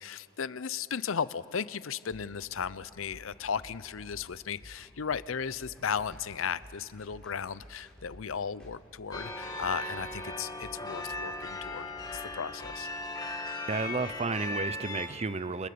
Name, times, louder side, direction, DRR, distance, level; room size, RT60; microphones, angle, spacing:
voice 1, 0.0-11.9 12.1-12.9, left 6 dB, 80° left, 17 dB, 0.6 m, -35 dB
sound 1, 2.1-12.8, equal, 5° left, 4.7 m, -53 dB
sound 2, 9.1-15.1, left 2 dB, 20° left, 2.1 m, -38 dB
voice 2, 13.7-15.7, right 4 dB, 30° right, 15 dB, 0.6 m, -32 dB
29.5 x 22.5 x 6.9 m, 2.7 s
head